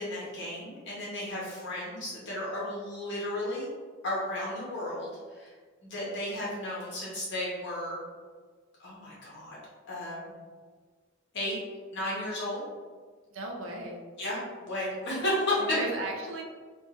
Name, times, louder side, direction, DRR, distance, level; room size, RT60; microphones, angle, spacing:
voice 1, 0.0-3.7 4.0-5.1 5.4-5.5 5.8-8.0 8.8-9.6 9.9-10.4 11.3-11.6 11.9-12.6 14.2-15.7, left 1 dB, 60° left, -6 dB, 1.3 m, -33 dB
voice 2, 13.3-14.1 15.6-16.4, right 2 dB, 70° right, 1 dB, 0.6 m, -35 dB
3.6 x 2.5 x 2.5 m, 1.5 s
head